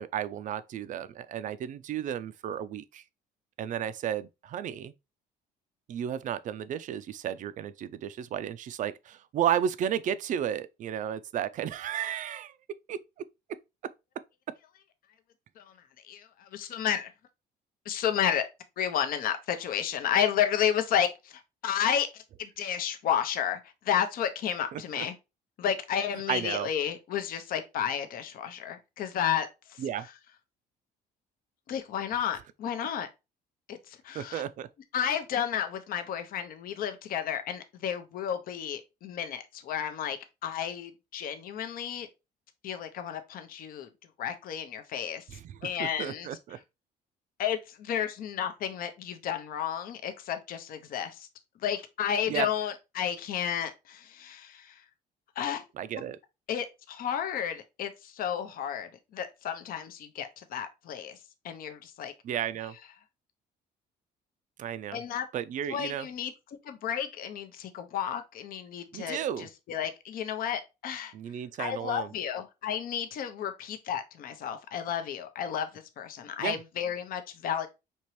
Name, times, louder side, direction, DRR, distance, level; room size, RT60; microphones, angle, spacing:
voice 1, 0.0-3.0 3.6-4.9 5.9-12.5 12.9-13.0 13.8-13.9 24.7-25.1 26.3-26.7 29.8-30.1 34.1-34.7 45.3-46.6 52.3-52.5 55.8-56.2 62.2-62.7 64.6-65.0 65.3-66.1 68.9-69.5 71.1-72.1 76.4-76.6, right 9 dB, 50° right, 0.4 m, -33 dB
voice 2, 16.0-17.1 17.9-18.4 18.8-25.1 25.6-30.1 31.7-33.1 33.7-34.4 34.9-42.1 42.6-43.9 44.2-45.2 45.6-46.6 47.4-51.3 51.6-54.8 55.4-55.6 56.5-61.2 61.4-62.1 64.9-65.3 65.7-66.3 66.6-71.1 71.6-77.7, left 9 dB, 60° left, 0.7 m, -32 dB
4.4 x 2.9 x 3.0 m
cardioid pair, 110°, 17 cm